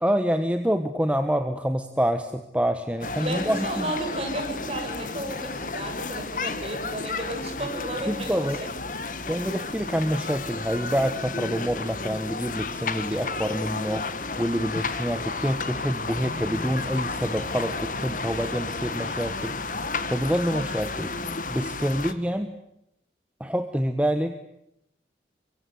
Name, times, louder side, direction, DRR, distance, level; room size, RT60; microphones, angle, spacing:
voice 1, 0.0-3.9 8.1-8.6 9.3-14.1 14.4-19.5 19.8-21.1 21.5-22.5 23.4-24.4, equal, 5° right, 8 dB, 1.3 m, -27 dB
sound 1, 3.0-22.1, left 3 dB, 45° left, 1.8 m, -32 dB
voice 2, 3.2-8.5 9.1-9.2, right 1 dB, 35° right, 2 dB, 7.7 m, -33 dB
sound 2, 16.1-22.2, equal, 65° right, 7.8 m, -44 dB
24.5 x 24.0 x 9.6 m, 0.80 s
head